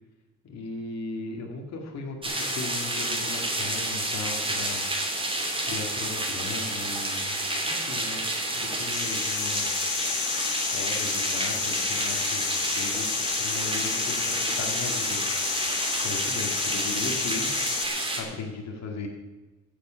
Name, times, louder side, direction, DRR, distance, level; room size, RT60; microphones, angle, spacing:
voice 1, 0.4-4.9 5.6-8.3 8.6-9.9 10.7-13.1 13.4-15.2 16.0-17.5 18.2-19.1, left 3 dB, 60° left, 1 dB, 2.2 m, -37 dB
sound 1, 2.2-18.2, right 1 dB, 15° right, 2.8 m, -29 dB
sound 2, 8.9-17.9, left 9 dB, 80° left, 1.3 m, -31 dB
15.5 x 7.5 x 5.8 m, 1.2 s
cardioid pair, 90°, 30 cm